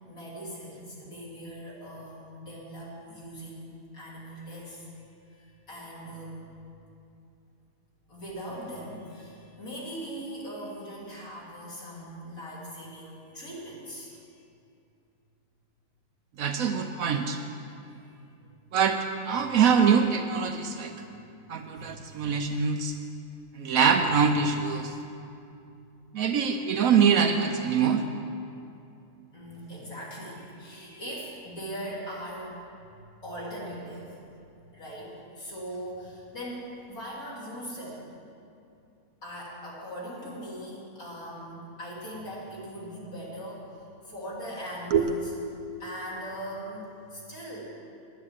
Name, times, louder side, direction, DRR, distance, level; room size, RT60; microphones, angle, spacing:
voice 1, 0.0-3.7 3.9-4.9 5.2-6.5 8.1-14.4 17.7-18.2 18.4-18.5 21.0-21.2 21.7-22.0 29.3-32.6 33.2-34.1 34.7-38.1 39.2-45.3 45.8-47.7, equal, 60° left, -6 dB, 3.5 m, -40 dB
voice 2, 16.4-17.4 18.7-19.0 19.2-20.9 21.5-22.9 23.6-24.9 26.1-28.0 44.9-45.1, right 6 dB, 65° right, 5 dB, 1.0 m, -24 dB
10.5 x 9.6 x 7.4 m, 2.6 s
omnidirectional pair, 1.7 m